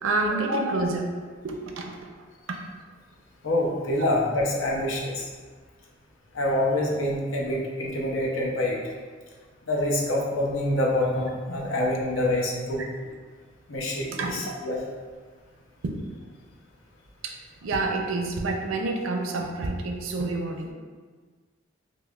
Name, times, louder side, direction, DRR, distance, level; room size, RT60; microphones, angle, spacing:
voice 1, 0.0-1.1 1.4-2.1 2.5-2.6 4.0-4.1 14.2-14.4 15.8-16.0 17.2-17.3 17.6-20.7, right 2 dB, 85° right, 2 dB, 0.5 m, -28 dB
voice 2, 3.4-5.3 6.3-8.8 9.7-12.8 13.7-14.8, left 1 dB, 80° left, -2 dB, 0.6 m, -26 dB
5.2 x 2.0 x 2.3 m, 1.5 s
head